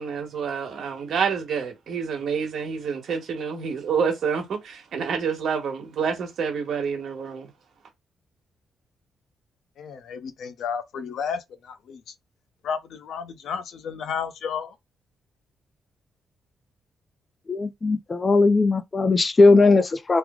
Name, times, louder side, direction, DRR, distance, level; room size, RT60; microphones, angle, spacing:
voice 1, 0.0-7.5, right 6 dB, 60° right, 1.1 m, -28 dB
voice 2, 9.8-12.1 12.6-14.7, left 6 dB, 70° left, 0.6 m, -32 dB
voice 3, 17.5-20.2, left 3 dB, 25° left, 0.4 m, -18 dB
3.1 x 2.0 x 3.5 m
wide cardioid pair, 165°, 0 cm